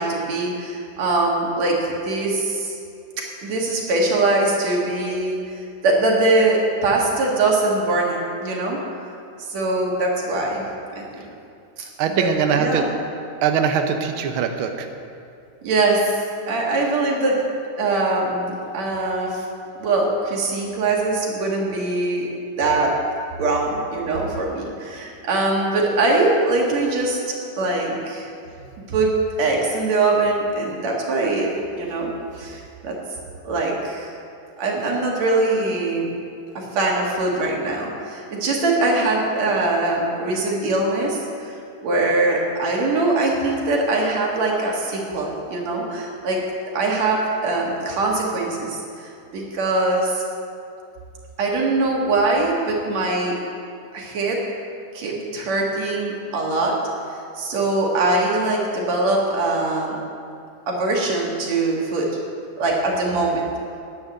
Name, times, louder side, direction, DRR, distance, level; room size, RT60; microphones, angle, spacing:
voice 1, 0.0-2.8 3.2-5.4 5.8-8.8 9.5-10.6 10.9-11.1 12.1-12.9 15.6-16.2 16.5-17.4 17.8-19.4 19.8-22.3 22.6-23.0 23.4-27.2 27.6-28.3 28.9-29.1 29.4-31.5 31.8-32.1 32.4-33.0 33.4-34.1 34.6-36.1 36.5-41.5 41.8-46.4 46.7-50.2 51.4-53.4 53.9-54.4 54.9-56.8 57.3-60.0 60.7-62.1 62.6-63.4, right 2 dB, 60° right, -2 dB, 3.2 m, -22 dB
voice 2, 12.0-12.8 13.4-14.9, right 7 dB, 85° right, 5 dB, 1.1 m, -21 dB
10.5 x 9.6 x 8.6 m, 2.5 s
omnidirectional pair, 3.6 m